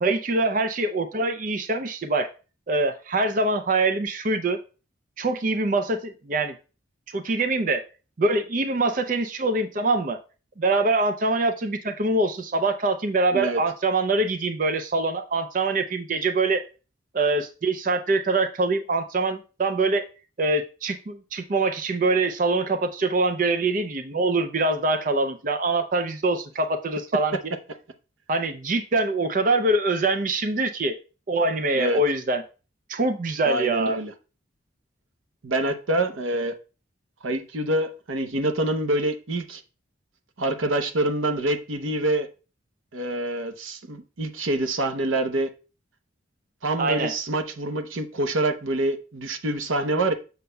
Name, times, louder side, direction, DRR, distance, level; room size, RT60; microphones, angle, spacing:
voice 1, 0.0-2.3 2.7-4.6 5.2-6.6 7.1-7.8 8.2-10.2 10.6-16.6 17.1-20.0 20.4-27.5 28.3-30.9 31.3-32.4 32.9-34.0 46.8-47.1, right 2 dB, 40° right, 0.5 m, -24 dB
voice 2, 33.4-34.1 35.4-36.6 37.2-39.6 40.4-42.3 42.9-45.5 46.6-50.1, right 1 dB, 90° right, 0.8 m, -26 dB
6.8 x 6.5 x 2.2 m
head